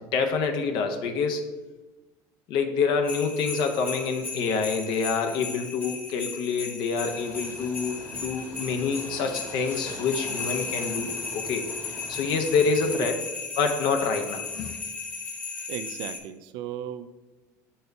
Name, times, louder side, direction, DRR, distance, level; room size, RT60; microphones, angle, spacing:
voice 1, 0.1-1.5 2.5-13.2 13.6-14.7, left 5 dB, 65° left, 5 dB, 0.7 m, -27 dB
sound 1, 3.0-16.2, left 4 dB, 20° left, 1.1 m, -36 dB
sound 2, 7.0-12.9, left 2 dB, 40° left, 1.4 m, -43 dB
voice 2, 15.7-17.1, right 10 dB, 70° right, 11 dB, 0.4 m, -36 dB
6.5 x 4.3 x 3.4 m, 1.2 s
supercardioid pair, 115°, 8 cm